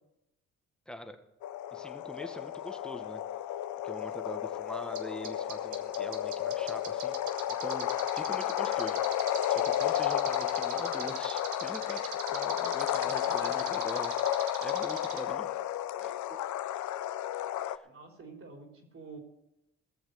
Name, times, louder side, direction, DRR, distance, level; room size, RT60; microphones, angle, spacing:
sound 1, 1.4-17.8, left 12 dB, 70° left, 0.7 m, -32 dB
voice 1, 1.7-3.2 3.8-7.1 7.6-9.0 9.5-12.0 12.3-15.5 16.0-16.4 17.6-17.9, left 1 dB, 5° left, 6 dB, 1.7 m, -43 dB
sound 2, 4.9-5.0 5.2-15.2, right 9 dB, 75° right, 1.9 m, -40 dB
voice 2, 13.2-13.7 17.8-19.2, right 4 dB, 45° right, 3 dB, 3.9 m, -48 dB
18.0 x 7.2 x 6.8 m, 0.87 s
cardioid pair, 90°, 30 cm